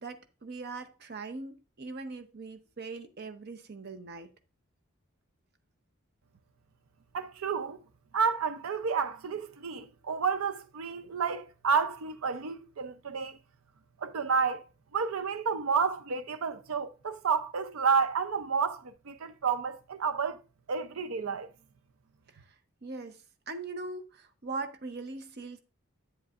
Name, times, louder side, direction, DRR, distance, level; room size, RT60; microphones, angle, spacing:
voice 1, 0.0-4.3 22.3-22.4 22.8-25.6, right 3 dB, 50° right, 0.7 m, -41 dB
voice 2, 7.1-7.8 8.1-13.4 14.0-14.6 14.9-20.4 20.7-21.5, right 5 dB, 85° right, 0.5 m, -30 dB
8.8 x 7.7 x 2.4 m
head